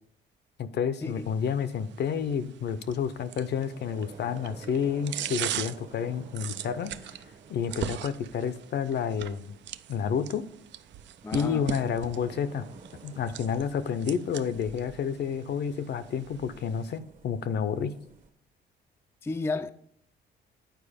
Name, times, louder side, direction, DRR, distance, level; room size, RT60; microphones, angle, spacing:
voice 1, 0.6-6.9 7.5-9.5 9.9-10.5 11.3-12.7 13.0-18.0, left 7 dB, 60° left, 0.6 m, -30 dB
sound 1, 1.0-17.0, right 11 dB, 65° right, 0.4 m, -41 dB
sound 2, 3.1-18.3, right 4 dB, 40° right, 1.0 m, -51 dB
voice 2, 11.2-11.6 19.2-19.7, left 3 dB, 10° left, 0.3 m, -32 dB
9.1 x 4.5 x 5.0 m
cardioid pair, 90°, 20 cm